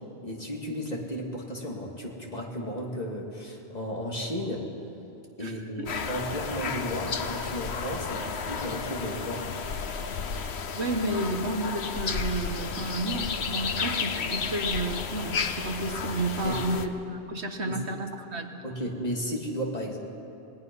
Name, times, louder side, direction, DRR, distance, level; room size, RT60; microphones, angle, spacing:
voice 1, 0.2-4.7 5.4-9.5 16.4-16.9 17.6-17.8 18.6-20.0, equal, 40° left, -1 dB, 2.8 m, -34 dB
sound 1, 5.9-16.9, left 5 dB, 75° left, 1.2 m, -32 dB
voice 2, 10.7-18.5, right 2 dB, 80° right, 5 dB, 1.8 m, -31 dB
27.5 x 20.0 x 5.5 m, 2.9 s
omnidirectional pair, 1.1 m